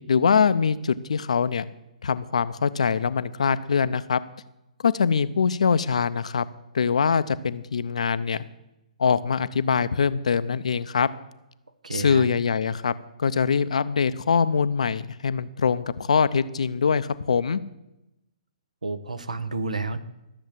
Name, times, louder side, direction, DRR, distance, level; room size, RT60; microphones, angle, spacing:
voice 1, 0.1-1.7 2.0-4.2 4.8-6.5 6.7-8.4 9.0-11.1 11.9-12.9 13.2-17.6, left 6 dB, 60° left, 14 dB, 0.6 m, -23 dB
voice 2, 11.8-12.3 18.8-20.0, right 3 dB, 75° right, 10 dB, 1.2 m, -30 dB
13.5 x 7.1 x 7.6 m, 0.91 s
figure-of-eight pair, 125°, 4 cm